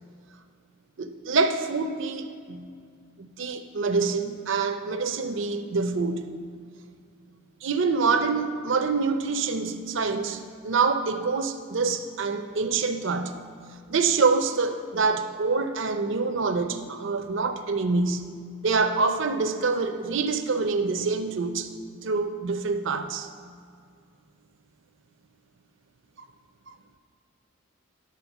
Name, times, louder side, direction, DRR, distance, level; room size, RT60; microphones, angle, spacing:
voice 1, 1.0-2.7 3.2-6.3 7.6-13.4 13.9-18.2 18.6-21.7 22.0-23.3, right 4 dB, 60° right, 7 dB, 0.6 m, -26 dB
10.5 x 4.2 x 7.1 m, 2.2 s
head